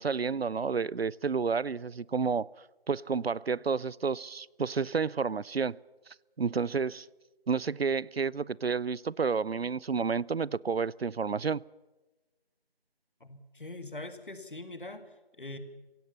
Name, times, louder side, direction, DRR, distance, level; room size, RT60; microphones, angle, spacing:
voice 1, 0.0-2.5 2.9-5.8 6.4-7.1 7.5-11.6, right 5 dB, 80° right, 0.6 m, -30 dB
voice 2, 13.2-15.6, left 2 dB, 55° left, 2.1 m, -43 dB
24.0 x 16.5 x 6.9 m
figure-of-eight pair, 170°, 30 cm